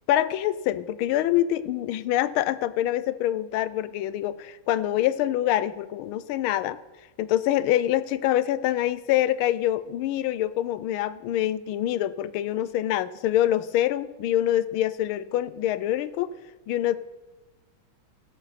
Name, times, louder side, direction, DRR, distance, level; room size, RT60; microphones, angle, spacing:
voice 1, 0.1-6.8 7.2-16.3 16.7-17.0, left 12 dB, 90° left, 15 dB, 1.5 m, -25 dB
16.5 x 7.8 x 4.1 m, 1.2 s
omnidirectional pair, 2.2 m